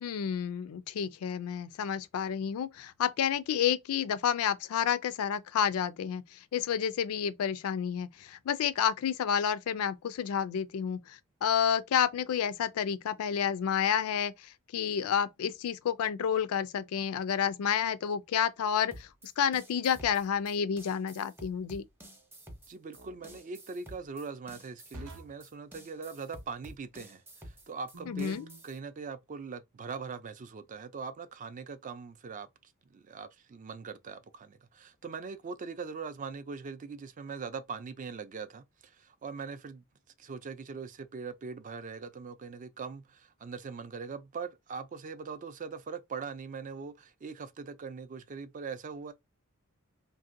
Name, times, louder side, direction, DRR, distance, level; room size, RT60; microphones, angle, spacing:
voice 1, 0.0-19.1 19.4-21.8 28.1-28.5, left 8 dB, 75° left, 0.3 m, -30 dB
sound 1, 18.9-28.8, right 1 dB, 10° right, 0.7 m, -51 dB
sound 2, 19.9-20.4 22.9-23.4 24.9-25.5 27.9-28.7, right 2 dB, 75° right, 0.8 m, -49 dB
voice 2, 22.7-28.4 28.6-39.8 40.2-49.1, right 5 dB, 35° right, 0.4 m, -41 dB
3.2 x 2.6 x 2.5 m
head